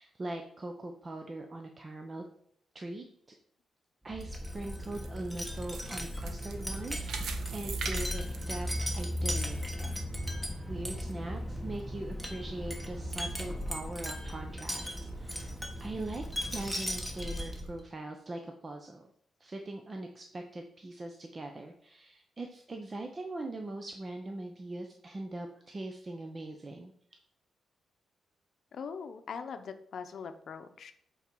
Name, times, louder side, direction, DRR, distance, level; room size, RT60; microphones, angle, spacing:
voice 1, 0.0-2.2 2.7-3.1 4.0-9.9 10.2-15.5 15.8-16.3 16.5-19.1 19.4-26.9, right 2 dB, 30° right, 3 dB, 0.7 m, -41 dB
Wind chime, 4.1-17.8, equal, 5° right, 1.2 m, -36 dB
sound 1, 4.5-9.4 9.8-9.9 10.5-10.6, right 5 dB, 85° right, 0.9 m, -42 dB
voice 2, 28.7-30.9, left 6 dB, 60° left, 8 dB, 0.8 m, -41 dB
8.2 x 4.1 x 4.6 m, 0.68 s
cardioid pair, 120°, 0 cm